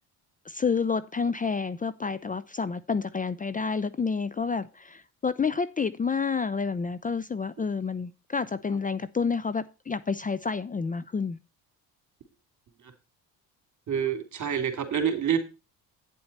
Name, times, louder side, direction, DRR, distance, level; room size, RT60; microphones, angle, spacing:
voice 1, 0.5-11.4, left 5 dB, 20° left, 0.6 m, -29 dB
voice 2, 13.9-15.4, right 8 dB, 50° right, 2.9 m, -27 dB
9.4 x 8.0 x 4.2 m
supercardioid pair, 80°, 37 cm